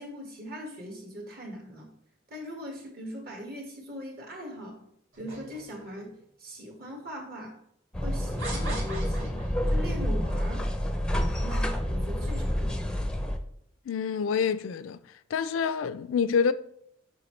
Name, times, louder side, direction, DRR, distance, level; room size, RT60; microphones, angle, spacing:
voice 1, 0.0-1.9 2.3-4.8 5.2-7.6 8.0-9.4 9.7-10.7 11.4-12.9, equal, 50° right, 1.7 m, -40 dB
sound 1, 5.1-6.1 6.9-7.0 8.4-9.7, right 2 dB, 80° right, 1.8 m, -40 dB
sound 2, 7.9-13.4, equal, 5° left, 0.5 m, -28 dB
voice 2, 13.9-15.0 15.3-16.5, left 6 dB, 85° left, 0.4 m, -27 dB
6.8 x 5.5 x 3.2 m
head